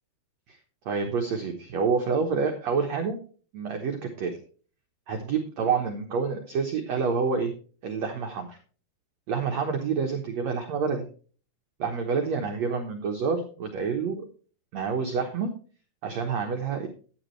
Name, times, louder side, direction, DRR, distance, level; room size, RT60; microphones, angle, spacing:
voice 1, 0.8-3.2 3.5-4.4 5.1-7.5 7.8-8.6 9.3-11.1 11.8-14.2 14.7-15.5 16.0-16.9, right 5 dB, 90° right, 4 dB, 1.5 m, -28 dB
12.0 x 9.5 x 3.1 m, 0.40 s
omnidirectional pair, 4.9 m